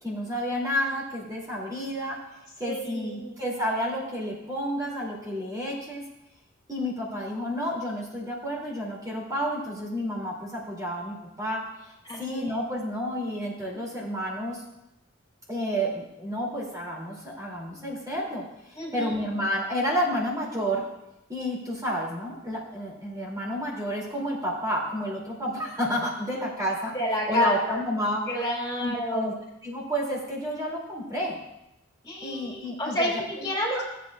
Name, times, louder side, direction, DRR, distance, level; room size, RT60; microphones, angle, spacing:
voice 1, 0.0-2.2 2.6-6.0 6.7-14.6 15.5-20.8 21.3-26.9 27.3-28.2 28.8-29.3 29.6-31.4 32.2-33.2 33.7-33.8, equal, 20° right, -5 dB, 2.6 m, -30 dB
voice 2, 2.7-3.3 12.1-12.6 18.7-19.1 26.9-27.8 28.3-29.3 32.0-33.8, left 1 dB, 20° left, -5 dB, 3.8 m, -29 dB
15.0 x 8.5 x 2.4 m, 0.89 s
head